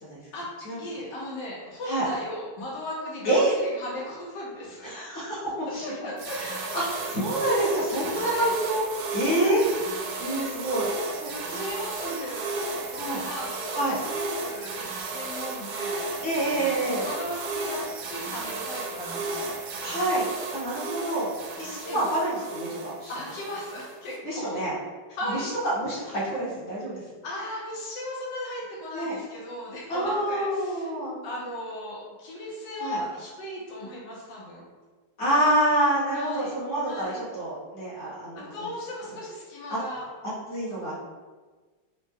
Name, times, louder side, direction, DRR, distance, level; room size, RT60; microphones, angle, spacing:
voice 1, 0.8-4.9 5.8-6.6 7.9-8.6 9.3-9.7 11.2-14.9 15.1-16.0 16.8-19.6 21.9-22.1 23.1-24.5 25.2-25.5 26.9-30.9 31.2-34.6 36.1-36.5 36.8-37.2 38.4-40.1, left 1 dB, 80° left, -5 dB, 1.4 m, -37 dB
voice 2, 4.8-5.8 6.4-6.8 7.1-8.8 9.1-9.6 10.2-11.6 12.0-12.2 12.9-13.2 13.8-14.0 16.2-17.1 19.8-20.2 20.5-21.3 21.6-23.1 24.2-24.7 25.3-27.0 28.9-29.2 29.9-31.2 32.8-33.0 35.2-38.5 39.7-39.8 40.2-40.9, right 1 dB, 45° left, -8 dB, 1.3 m, -27 dB
sound 1, 6.2-24.2, right 3 dB, 75° right, 1.1 m, -34 dB
4.1 x 2.0 x 3.4 m, 1.4 s
omnidirectional pair, 2.0 m